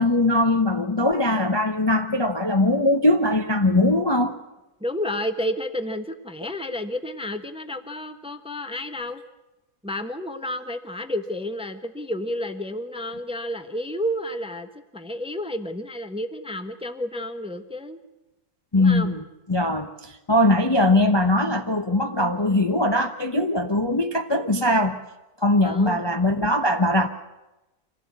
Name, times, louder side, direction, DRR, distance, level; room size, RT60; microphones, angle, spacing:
voice 1, 0.0-4.3 18.7-19.2 19.5-25.0 25.4-27.1, left 1 dB, 20° left, 5 dB, 0.9 m, -21 dB
voice 2, 4.8-9.2 9.8-18.0 18.7-19.2 25.6-26.0, left 1 dB, 5° right, 9 dB, 1.0 m, -31 dB
25.5 x 16.0 x 8.4 m, 1.0 s
omnidirectional pair, 1.6 m